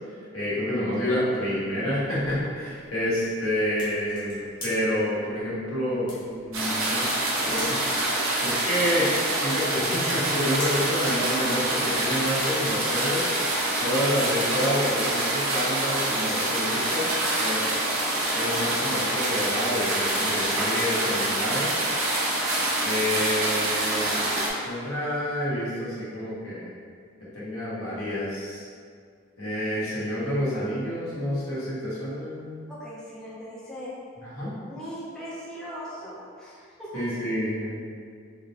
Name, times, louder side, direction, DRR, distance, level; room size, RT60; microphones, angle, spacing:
voice 1, 0.3-7.0 7.5-7.8 8.4-13.3 13.8-17.1 17.4-17.8 18.3-21.9 22.8-24.1 24.6-26.7 27.3-28.6 29.4-32.6 34.4-34.5 36.9-37.8, left 1 dB, 85° left, -9 dB, 1.1 m, -28 dB
sound 1, 1.5-11.9, left 1 dB, 20° left, 0.9 m, -46 dB
sound 2, 6.5-24.5, right 1 dB, 70° right, 0.6 m, -26 dB
voice 2, 32.7-33.9 34.6-37.0, equal, 5° left, -9 dB, 0.5 m, -39 dB
3.6 x 2.1 x 2.7 m, 2.1 s
head